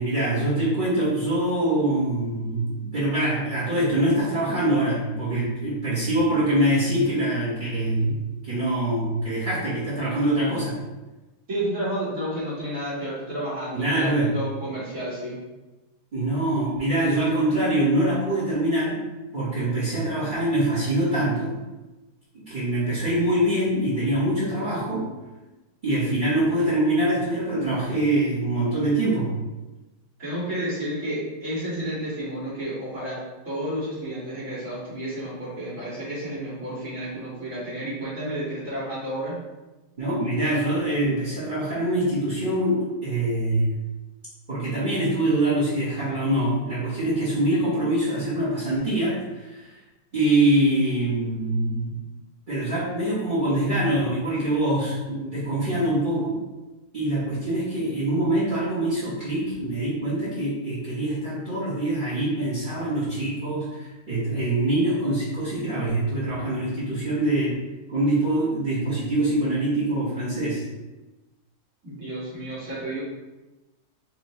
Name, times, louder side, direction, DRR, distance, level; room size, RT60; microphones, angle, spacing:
voice 1, 0.0-8.1 8.4-10.8 13.7-14.3 16.1-19.0 19.3-21.6 22.3-25.1 25.8-29.3 40.0-43.7 44.5-49.7 50.1-52.0 52.5-56.3 56.9-67.6 67.9-70.6, right 1 dB, 30° right, -10 dB, 1.4 m, -24 dB
voice 2, 11.5-15.4 30.2-33.2 33.5-39.4 71.8-73.0, right 1 dB, 55° right, -9 dB, 2.0 m, -31 dB
5.8 x 2.6 x 3.0 m, 1.1 s
omnidirectional pair, 1.7 m